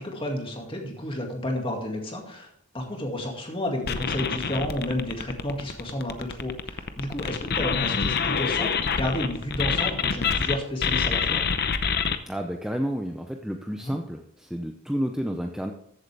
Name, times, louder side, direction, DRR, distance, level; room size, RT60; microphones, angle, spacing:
voice 1, 0.0-2.5 2.7-11.4 13.8-14.0, left 1 dB, 25° left, 1 dB, 2.1 m, -31 dB
sound 1, 3.8-10.6 10.8-12.2, left 6 dB, 45° left, 0.7 m, -26 dB
voice 2, 12.3-15.7, equal, 5° right, 3 dB, 0.5 m, -30 dB
14.0 x 8.0 x 3.4 m, 0.73 s
head